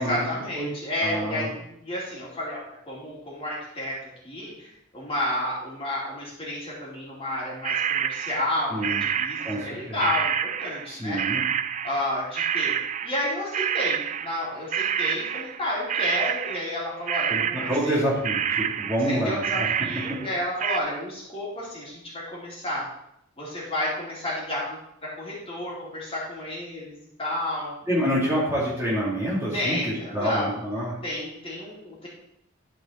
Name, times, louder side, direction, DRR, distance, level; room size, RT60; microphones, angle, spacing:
voice 1, 0.0-4.0 4.2-11.2 11.8-12.7 13.0-18.0 19.1-22.9 23.4-27.7 29.5-30.6 31.0-32.1, left 1 dB, 25° left, -6 dB, 2.9 m, -31 dB
voice 2, 1.0-1.5 8.7-9.0 9.4-10.0 10.9-11.4 17.3-17.4 17.7-19.7 27.9-30.9, equal, 15° right, -7 dB, 2.4 m, -27 dB
sound 1, 7.6-14.5 14.7-16.8 17.1-18.0 18.2-20.8, right 8 dB, 35° right, 0.3 m, -28 dB
12.0 x 4.9 x 4.3 m, 0.77 s
head